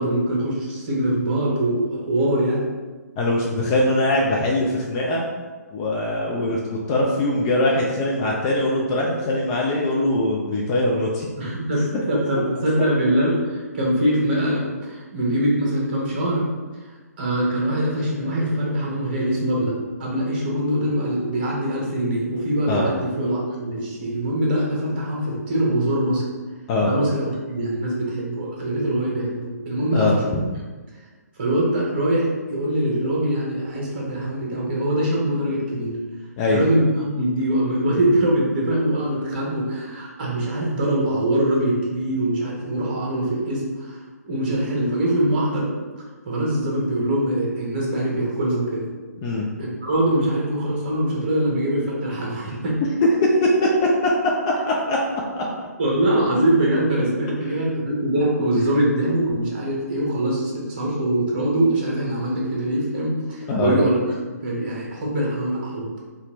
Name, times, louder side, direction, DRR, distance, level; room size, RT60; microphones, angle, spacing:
voice 1, 0.0-2.6 11.4-16.5 17.2-19.7 20.0-26.2 26.8-30.3 31.4-36.0 36.5-44.0 44.3-45.7 46.2-48.8 49.6-52.8 55.8-64.0 64.3-65.9, right 1 dB, 35° right, -3 dB, 1.1 m, -23 dB
voice 2, 3.2-5.2 5.7-11.3 22.7-22.9 26.7-26.9 29.9-30.4 36.4-36.6 49.2-49.5 53.4-53.5 54.0-54.1 54.7-55.0 55.4-55.5 63.5-63.8, left 2 dB, 20° left, -3 dB, 0.4 m, -22 dB
4.1 x 2.5 x 3.0 m, 1.3 s
figure-of-eight pair, 135°, 9 cm